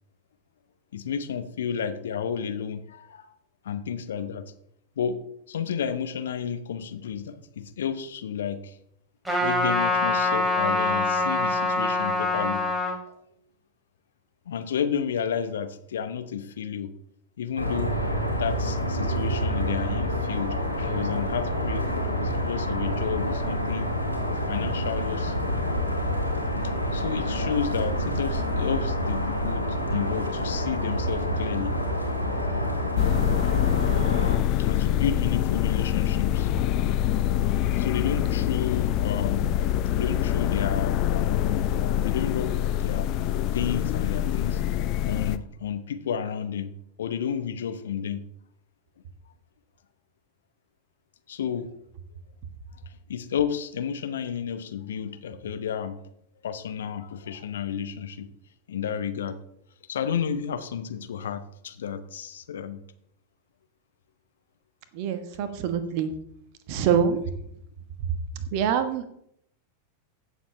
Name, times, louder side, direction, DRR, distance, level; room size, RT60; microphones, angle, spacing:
voice 1, 0.9-3.3 3.6-4.5 5.0-5.2 5.5-8.8 9.4-13.1 14.5-16.9 17.4-18.0 18.3-23.9 24.3-25.4 26.9-31.8 34.6-36.5 37.8-39.5 39.9-43.1 43.5-44.6 45.0-48.3 51.3-51.7 52.9-56.0 56.4-58.3 58.7-59.4 59.9-62.8 66.9-67.1, left 8 dB, 65° left, 10 dB, 0.9 m, -31 dB
Trumpet, 9.3-13.0, left 2 dB, 5° right, 3.2 m, -24 dB
sound 1, 17.6-34.4, equal, 90° right, 2.0 m, -28 dB
sound 2, 33.0-45.4, left 11 dB, 40° left, 0.5 m, -25 dB
voice 2, 64.9-66.1 66.7-67.2 68.5-69.1, right 8 dB, 45° right, 9 dB, 1.2 m, -25 dB
16.0 x 7.1 x 3.3 m, 0.73 s
figure-of-eight pair, 90°, 0 cm